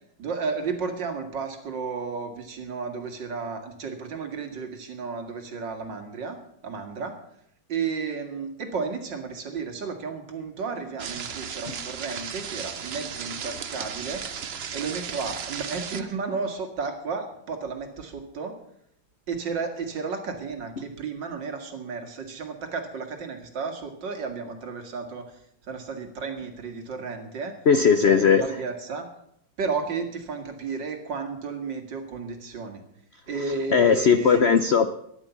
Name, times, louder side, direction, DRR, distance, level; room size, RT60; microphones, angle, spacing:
voice 1, 0.2-6.4 6.6-7.2 7.7-14.3 14.7-18.6 19.3-25.4 25.6-27.6 28.0-29.1 29.6-32.8 33.3-34.6, right 5 dB, 70° right, 5 dB, 2.6 m, -33 dB
sound 1, 11.0-16.0, right 7 dB, 50° right, 0.7 m, -35 dB
voice 2, 27.7-28.4 33.7-34.9, left 6 dB, 90° left, 10 dB, 0.5 m, -18 dB
14.0 x 10.5 x 7.0 m, 0.72 s
omnidirectional pair, 2.1 m